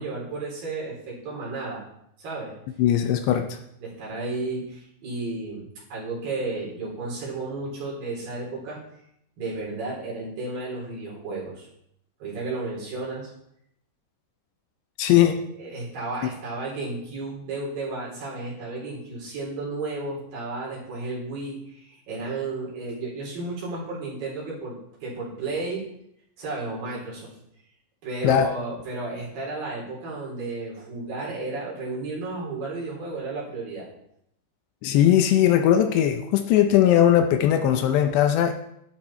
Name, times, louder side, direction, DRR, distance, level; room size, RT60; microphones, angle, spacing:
voice 1, 0.0-1.9 2.2-2.6 3.8-8.8 9.4-11.7 12.2-13.3 15.1-15.2 15.6-25.9 26.4-27.3 28.0-33.9, right 3 dB, 50° right, -5 dB, 5.8 m, -33 dB
voice 2, 2.8-3.6 15.0-15.4 28.2-28.5 34.8-38.5, left 10 dB, 80° left, 7 dB, 2.8 m, -19 dB
12.0 x 11.5 x 4.4 m, 0.75 s
omnidirectional pair, 5.2 m